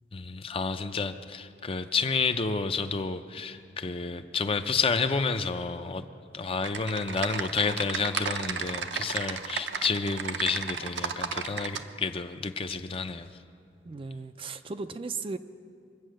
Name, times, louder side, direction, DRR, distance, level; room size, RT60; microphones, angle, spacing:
voice 1, 0.1-6.0 6.3-13.3, left 4 dB, 30° left, 9 dB, 0.5 m, -30 dB
Typing, 6.6-11.8, right 6 dB, 65° right, 0.7 m, -33 dB
voice 2, 13.9-15.4, right 4 dB, 30° right, 10 dB, 0.4 m, -36 dB
23.5 x 8.4 x 6.4 m, 2.3 s
head